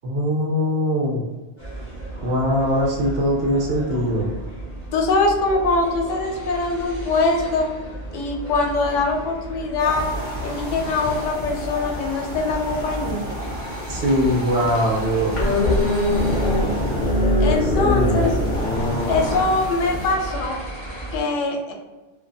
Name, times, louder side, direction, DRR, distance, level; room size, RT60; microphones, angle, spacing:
voice 1, 0.0-1.2 2.2-4.3 13.9-15.6 17.8-18.3, equal, 60° right, -2 dB, 0.8 m, -21 dB
sound 1, 1.6-21.2, right 2 dB, 10° right, 1.0 m, -34 dB
voice 2, 4.9-7.7 8.1-10.1 10.4-13.3 17.4-18.3 19.1-20.6 21.1-21.7, left 3 dB, 85° left, 2 dB, 0.9 m, -22 dB
sound 2, 9.8-20.1, left 1 dB, 25° left, 1.0 m, -33 dB
sound 3, 12.9-13.0 13.3-13.5 13.9-14.3 14.6-19.4, left 1 dB, 50° left, 0.6 m, -21 dB
2.6 x 2.4 x 2.2 m, 1.2 s
omnidirectional pair, 1.2 m